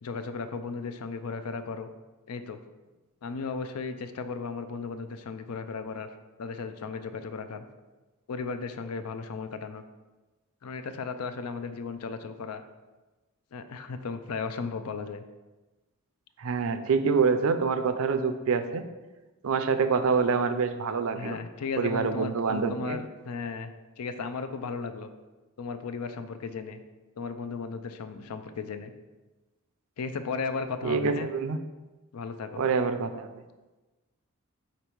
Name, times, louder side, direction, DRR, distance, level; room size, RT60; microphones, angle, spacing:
voice 1, 0.0-1.9 2.3-2.6 3.2-6.1 6.4-7.7 8.3-9.8 10.6-12.6 13.5-15.2 21.1-23.7 24.0-25.1 25.6-26.8 27.2-28.9 30.0-31.3 32.1-32.6, left 4 dB, 85° left, 10 dB, 0.5 m, -35 dB
voice 2, 16.4-18.8 19.4-21.4 21.8-23.0 30.8-31.6 32.6-33.3, right 5 dB, 70° right, 10 dB, 0.5 m, -26 dB
5.2 x 4.3 x 4.5 m, 1.2 s
head